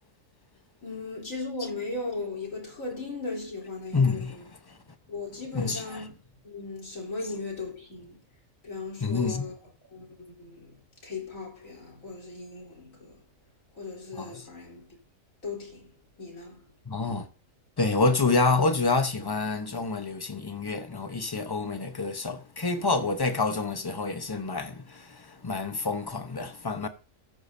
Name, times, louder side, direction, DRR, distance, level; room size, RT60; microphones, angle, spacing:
voice 1, 0.8-4.4 5.1-6.1 6.4-8.2 8.6-9.5 9.9-13.2 13.7-14.9 15.4-16.7, left 3 dB, 80° left, 3.8 m, -37 dB
voice 2, 3.9-4.8 5.5-6.1 7.2-7.3 9.0-9.5 14.1-14.5 16.9-17.3 17.8-26.9, left 3 dB, 20° left, 0.7 m, -28 dB
13.5 x 8.6 x 2.7 m
omnidirectional pair, 1.4 m